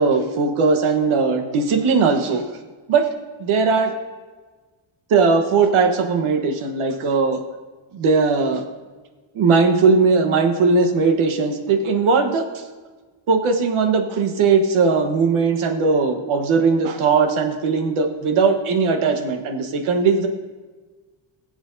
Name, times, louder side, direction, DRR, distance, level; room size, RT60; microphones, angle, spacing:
voice 1, 0.0-2.4 2.9-3.0 3.4-3.9 5.1-7.4 7.9-8.6 9.3-12.6 13.3-20.3, right 4 dB, 85° right, 5 dB, 1.3 m, -19 dB
19.0 x 7.9 x 2.7 m, 1.3 s
cardioid pair, 160°, 48 cm